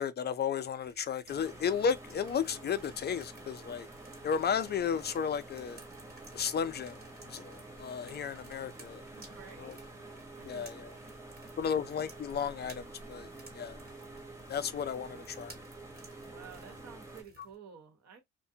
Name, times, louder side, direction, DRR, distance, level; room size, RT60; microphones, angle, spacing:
voice 1, 0.0-3.9 4.2-5.8 6.3-9.0 9.6-9.8 10.4-10.9 11.6-13.8 14.5-15.6, left 7 dB, 35° left, 0.4 m, -34 dB
sound 1, 0.8-17.6, right 2 dB, 30° right, 1.1 m, -58 dB
sound 2, 1.3-17.2, right 2 dB, 10° right, 0.9 m, -49 dB
voice 2, 9.1-9.9 10.4-11.3 16.2-18.2, right 6 dB, 60° right, 1.1 m, -53 dB
2.5 x 2.1 x 2.7 m
cardioid pair, 90°, 30 cm